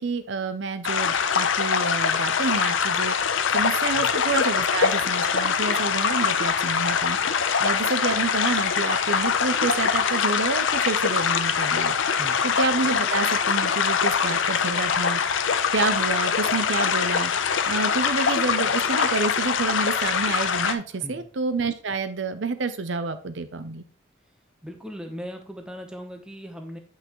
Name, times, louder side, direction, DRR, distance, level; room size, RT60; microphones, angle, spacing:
voice 1, 0.0-3.1 3.5-7.2 7.6-11.9 12.4-15.2 15.7-17.3 17.7-23.8, right 4 dB, 65° right, 11 dB, 0.6 m, -28 dB
sound 1, 0.8-20.7, left 6 dB, 70° left, 0.6 m, -23 dB
voice 2, 12.1-12.4 20.9-21.3 24.6-26.8, equal, 5° right, 4 dB, 0.9 m, -38 dB
8.4 x 5.6 x 3.0 m, 0.40 s
head